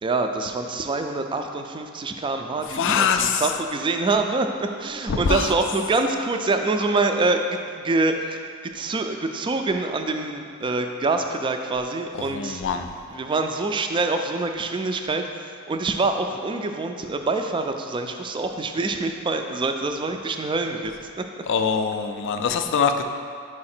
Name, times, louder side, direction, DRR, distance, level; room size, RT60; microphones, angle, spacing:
voice 1, 0.0-12.6 13.1-21.3, right 3 dB, 25° right, 5 dB, 0.3 m, -25 dB
voice 2, 2.7-3.4 5.1-5.5 12.3-12.9 21.5-23.0, left 6 dB, 60° left, 7 dB, 0.4 m, -23 dB
4.8 x 4.7 x 4.3 m, 2.2 s
head